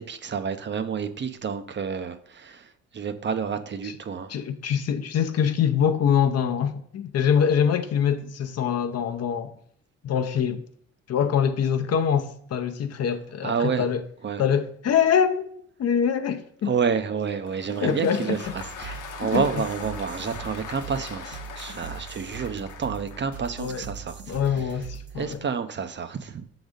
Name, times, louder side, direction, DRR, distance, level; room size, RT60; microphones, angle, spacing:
voice 1, 0.0-4.3 13.4-13.8 14.2-14.4 16.6-24.1 24.6-24.7 25.2-26.4, right 6 dB, 40° right, 0.6 m, -29 dB
voice 2, 4.3-9.5 10.0-10.6 11.1-14.0 14.4-15.5 15.8-16.7 17.8-18.4 19.2-19.4 23.6-23.8 24.3-25.4, left 8 dB, 55° left, 0.7 m, -24 dB
Applause, 17.2-23.4, left 7 dB, 85° left, 0.9 m, -41 dB
sound 1, 18.4-25.4, right 7 dB, 70° right, 1.8 m, -41 dB
6.1 x 4.0 x 5.0 m
cardioid pair, 90°, 30 cm